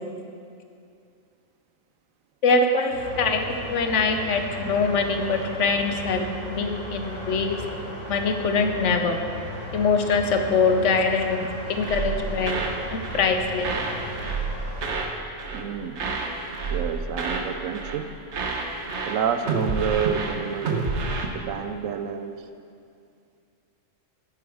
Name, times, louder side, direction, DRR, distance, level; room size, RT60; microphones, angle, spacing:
voice 1, 2.4-7.6 8.1-9.2 9.7-12.6 12.9-13.7, left 4 dB, 65° left, 5 dB, 1.1 m, -23 dB
sound 1, 2.9-15.0, equal, 40° right, 3.4 m, -36 dB
sound 2, 11.8-12.8 13.0-13.3 13.6-15.1 15.4-15.7 16.0-17.5 17.7-18.0 18.3-21.3, right 4 dB, 60° right, 1.2 m, -29 dB
voice 2, 15.5-16.0 16.7-18.1 19.1-20.9 21.3-22.4, right 7 dB, 85° right, 9 dB, 1.0 m, -29 dB
13.0 x 7.1 x 4.8 m, 2.4 s
omnidirectional pair, 1.4 m